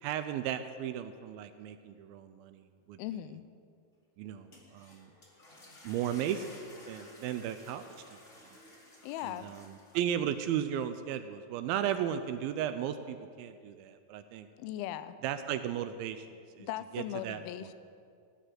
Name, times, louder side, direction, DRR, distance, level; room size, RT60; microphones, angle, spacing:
voice 1, 0.0-3.0 4.2-5.1 5.8-6.5 6.9-8.2 9.2-14.5 15.2-16.3 16.6-16.7 16.9-17.4, right 10 dB, 80° right, 10 dB, 2.2 m, -35 dB
voice 2, 3.0-3.4 9.0-9.5 14.6-15.2 16.6-17.7, left 12 dB, 85° left, 13 dB, 2.4 m, -38 dB
sound 1, 4.3-10.3, left 1 dB, 25° left, 1.8 m, -54 dB
17.0 x 6.6 x 9.3 m, 2.3 s
omnidirectional pair, 4.6 m